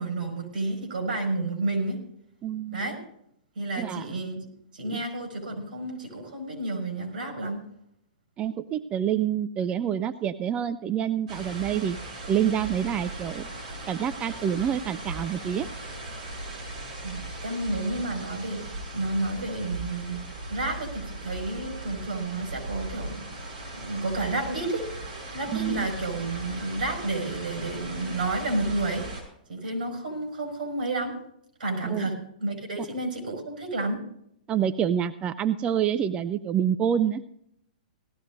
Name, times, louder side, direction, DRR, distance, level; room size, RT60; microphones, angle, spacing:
voice 1, 0.0-2.0 2.7-3.0 3.6-4.4 4.7-7.6 17.0-20.2 20.5-23.2 23.7-24.9 25.3-29.1 29.5-31.2 31.6-34.0, right 2 dB, 75° right, 3 dB, 5.2 m, -31 dB
voice 2, 2.4-3.0 3.8-4.1 4.9-5.0 8.4-12.0 12.3-13.5 13.9-15.7 25.5-25.9 31.8-32.1 34.5-37.2, right 9 dB, 20° right, 13 dB, 0.4 m, -27 dB
sound 1, 11.3-29.2, right 2 dB, 60° right, 5.6 m, -38 dB
18.5 x 14.0 x 2.6 m, 0.73 s
hypercardioid pair, 135°, 5 cm